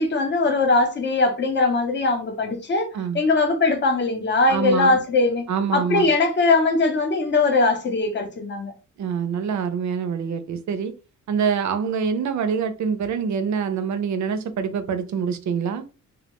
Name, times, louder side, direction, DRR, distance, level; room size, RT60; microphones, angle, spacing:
voice 1, 0.0-2.9 3.1-5.4 5.7-8.7, left 3 dB, 35° left, 0.6 m, -20 dB
voice 2, 4.5-5.0 5.5-6.1 9.0-10.9 11.3-15.8, right 6 dB, 60° right, 0.4 m, -25 dB
2.2 x 2.1 x 2.9 m
wide cardioid pair, 155°, 32 cm